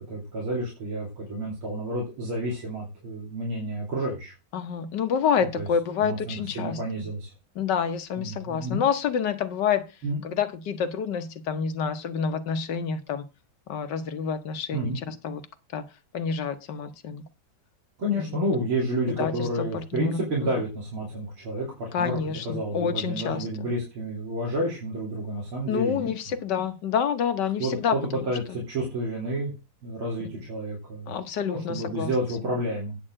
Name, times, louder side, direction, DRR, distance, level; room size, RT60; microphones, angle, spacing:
voice 1, 0.1-4.3 5.5-5.7 6.0-7.3 8.2-8.8 10.0-10.2 14.7-15.0 18.0-22.2 22.4-26.1 27.6-29.5 29.8-31.1 31.5-33.0, right 1 dB, 80° right, 3.9 m, -30 dB
voice 2, 4.5-6.8 7.5-9.8 10.2-13.2 13.7-15.4 15.7-15.8 16.1-17.2 18.2-18.4 19.2-20.2 21.9-23.7 25.7-28.2 31.1-32.1, left 7 dB, 60° left, 1.4 m, -28 dB
10.0 x 4.3 x 7.4 m
omnidirectional pair, 2.3 m